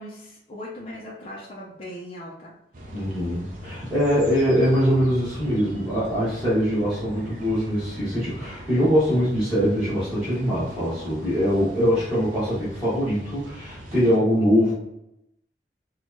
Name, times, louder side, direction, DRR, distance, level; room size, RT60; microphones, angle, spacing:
voice 1, 0.0-2.5, left 1 dB, 35° left, -5 dB, 0.6 m, -39 dB
sound 1, 2.7-14.2, equal, 50° right, 0.7 m, -40 dB
voice 2, 2.9-14.7, equal, 5° right, -15 dB, 1.3 m, -22 dB
4.4 x 2.3 x 2.7 m, 0.82 s
head